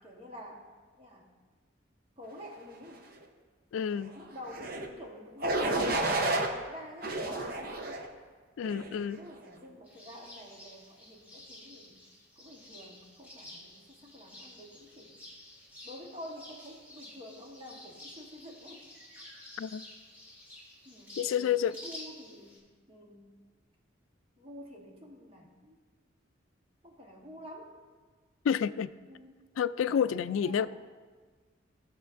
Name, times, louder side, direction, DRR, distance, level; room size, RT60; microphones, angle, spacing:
voice 1, 0.0-0.7 1.0-1.3 2.2-3.0 4.1-8.0 8.6-12.0 12.3-15.2 15.8-18.8 20.8-23.4 24.4-25.8 26.8-27.8 29.1-29.3 29.9-30.7, equal, 30° right, -1 dB, 1.2 m, -48 dB
voice 2, 3.7-4.1 8.6-9.2 19.6-19.8 21.2-21.7 28.4-28.9 29.6-30.7, left 8 dB, 85° left, 14 dB, 0.3 m, -29 dB
sound 1, 4.5-4.9 5.4-6.5 7.0-8.1 8.6-9.0, right 2 dB, 50° right, 0.7 m, -31 dB
sound 2, 9.9-22.6, left 1 dB, 10° right, 2.0 m, -51 dB
15.0 x 6.7 x 2.5 m, 1.4 s
head